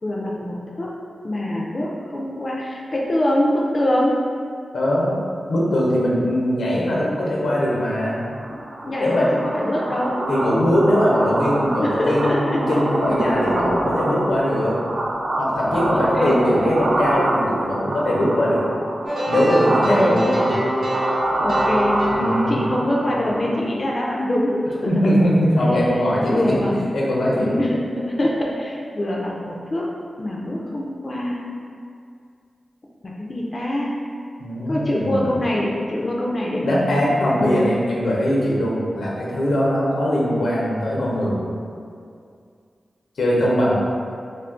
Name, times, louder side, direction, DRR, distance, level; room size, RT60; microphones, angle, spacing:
voice 1, 0.0-0.9 1.2-4.2 8.5-9.3 9.5-10.1 11.6-12.6 15.9-16.8 19.7-20.3 21.4-22.0 22.5-24.6 25.6-25.8 26.2-26.9 27.3-29.8 30.2-31.4 33.0-33.9 34.7-37.0 37.4-37.6, left 1 dB, 40° left, -3 dB, 0.3 m, -24 dB
voice 2, 4.7-5.1 5.5-8.2 9.0-9.3 10.3-14.8 15.4-18.7 19.3-20.5 22.1-22.6 24.9-26.5 26.9-27.6 34.4-35.3 36.6-41.4 43.2-43.7, equal, 90° left, -5 dB, 0.6 m, -21 dB
sound 1, 8.3-23.7, right 1 dB, 60° right, 0.3 m, -25 dB
sound 2, 19.1-22.9, right 1 dB, 85° right, 0.8 m, -24 dB
2.4 x 2.4 x 3.6 m, 2.3 s
cardioid pair, 70°, 0 cm